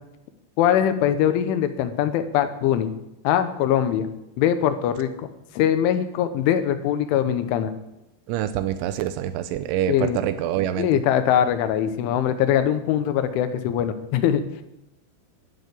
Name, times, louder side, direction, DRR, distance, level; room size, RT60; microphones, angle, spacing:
voice 1, 0.6-2.9 3.3-4.1 4.4-5.3 5.6-7.7 9.9-10.2 10.8-14.4, left 10 dB, 90° left, 10 dB, 3.5 m, -22 dB
voice 2, 8.3-10.9, right 11 dB, 85° right, 11 dB, 3.1 m, -26 dB
11.5 x 11.0 x 8.3 m, 0.89 s
omnidirectional pair, 5.4 m